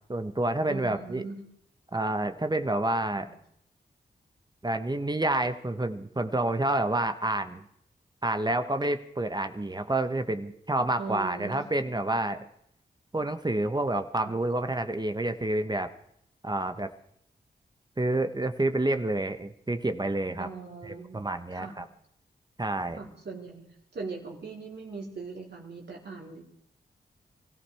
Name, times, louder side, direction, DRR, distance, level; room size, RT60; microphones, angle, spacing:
voice 1, 0.1-1.2 1.9-3.3 4.6-7.6 8.2-12.4 13.1-15.9 16.4-16.9 18.0-20.5 20.8-21.8 22.6-23.0, right 2 dB, 25° right, 9 dB, 1.1 m, -28 dB
voice 2, 0.7-1.4 3.1-3.3 11.0-11.6 14.2-14.3 20.4-21.2 21.5-21.8 23.0-26.5, right 4 dB, 70° right, -2 dB, 3.9 m, -40 dB
24.5 x 14.5 x 3.5 m, 0.72 s
cardioid pair, 45°, 18 cm